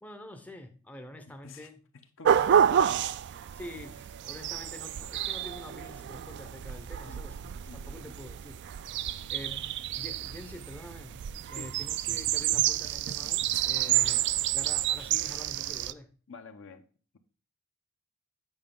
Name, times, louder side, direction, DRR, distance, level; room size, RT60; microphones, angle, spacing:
voice 1, 0.0-1.8 2.3-3.1 3.5-9.6 10.0-11.2 11.5-14.2 14.5-16.1, left 1 dB, 5° left, 0.6 m, -46 dB
voice 2, 1.9-2.9 3.4-3.6 7.1-7.3 7.7-8.0 9.2-9.3 11.5-11.7 13.8-14.4 16.3-16.8, left 4 dB, 65° left, 0.8 m, -48 dB
sound 1, 2.2-15.9, right 10 dB, 55° right, 0.3 m, -29 dB
8.9 x 5.0 x 3.6 m
head